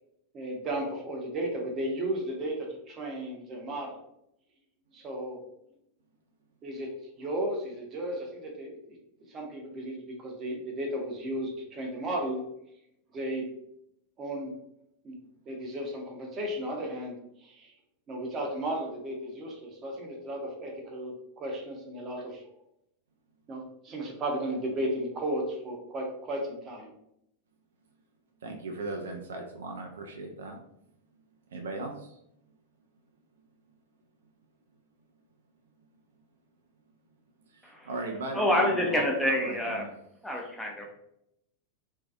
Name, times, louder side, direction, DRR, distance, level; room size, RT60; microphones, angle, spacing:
voice 1, 0.3-4.0 4.9-5.4 6.6-6.9 7.2-8.8 9.3-12.4 13.1-13.5 14.2-14.5 15.0-15.2 15.5-17.7 18.1-22.4 23.5-26.9, right 1 dB, 30° right, 0 dB, 0.7 m, -34 dB
voice 2, 28.4-30.6 31.5-32.2 37.5-39.1 39.4-39.9, right 2 dB, 65° right, 3 dB, 0.3 m, -37 dB
voice 3, 38.3-39.8 40.2-40.8, left 1 dB, 5° left, -1 dB, 0.5 m, -27 dB
2.5 x 2.3 x 2.4 m, 0.78 s
figure-of-eight pair, 90°, 0 cm